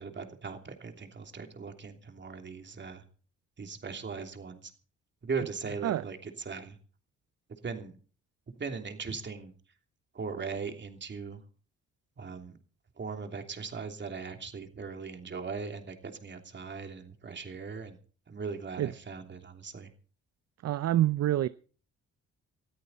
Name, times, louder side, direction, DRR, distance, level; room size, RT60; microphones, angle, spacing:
voice 1, 0.0-3.0 3.6-4.7 5.2-6.8 7.6-8.0 8.6-9.5 10.1-11.4 12.2-12.6 13.0-18.0 18.3-19.9, right 5 dB, 35° right, 3.0 m, -39 dB
voice 2, 20.6-21.5, right 13 dB, 55° right, 0.6 m, -26 dB
20.0 x 13.5 x 4.1 m
cardioid pair, 90°, 30 cm